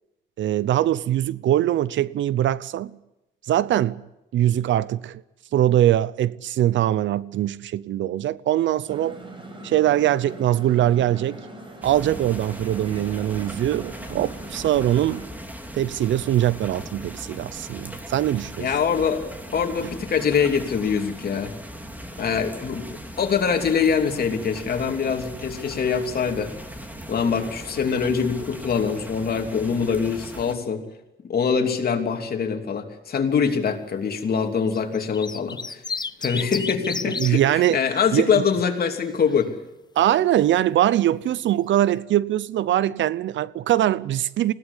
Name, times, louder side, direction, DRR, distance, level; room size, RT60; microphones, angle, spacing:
voice 1, 0.4-3.0 3.5-4.0 4.3-5.2 5.5-9.2 9.6-11.4 11.8-15.2 15.7-18.7 37.1-37.8 38.1-38.4 40.0-44.5, right 12 dB, 70° right, 0.7 m, -22 dB
sound 1, 8.9-15.3, right 1 dB, 25° right, 5.7 m, -41 dB
sound 2, 11.8-30.5, equal, 10° right, 3.1 m, -39 dB
voice 2, 18.6-19.2 19.5-21.5 22.2-22.9 23.2-26.5 27.1-30.8 31.2-35.8 36.2-39.5, left 6 dB, 50° left, 3.0 m, -24 dB
sound 3, 34.7-37.3 38.6-39.0, left 4 dB, 20° left, 0.8 m, -31 dB
20.5 x 16.5 x 9.8 m
cardioid pair, 90°, 20 cm